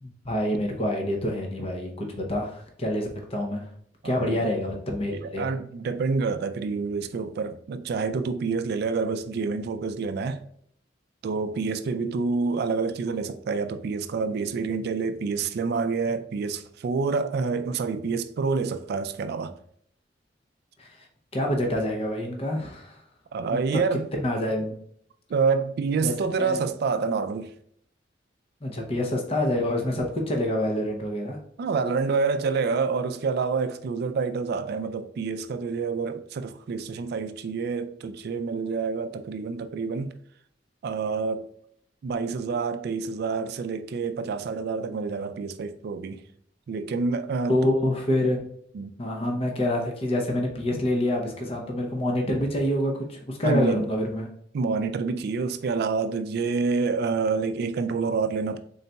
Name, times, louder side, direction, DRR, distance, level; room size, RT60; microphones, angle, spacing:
voice 1, 0.0-3.7 4.0-5.4 20.8-21.1 21.3-23.0 23.5-23.6 24.1-24.7 26.0-26.1 26.4-26.6 28.6-31.4 47.5-48.4 49.0-54.3, left 1 dB, 35° left, 0.6 m, -27 dB
voice 2, 4.0-4.4 5.1-10.4 11.2-19.5 23.3-24.1 25.3-27.5 31.6-40.1 40.8-41.5 42.0-46.2 46.7-47.6 48.7-48.9 53.4-53.9 54.5-58.6, right 4 dB, 60° right, 0.3 m, -27 dB
4.0 x 3.9 x 2.2 m
head